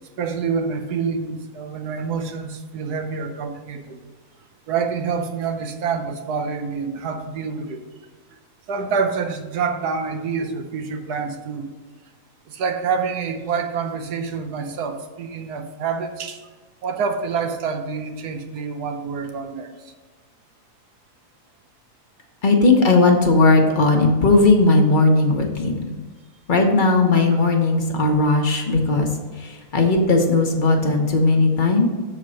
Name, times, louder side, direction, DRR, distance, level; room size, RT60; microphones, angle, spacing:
voice 1, 0.2-4.0 4.7-7.8 8.7-11.7 12.5-16.5 16.8-19.9, right 5 dB, 85° right, 6 dB, 1.4 m, -27 dB
voice 2, 22.4-25.9 26.5-29.1 29.4-31.9, left 3 dB, 35° left, 2 dB, 1.1 m, -17 dB
7.1 x 4.5 x 6.3 m, 1.4 s
omnidirectional pair, 1.6 m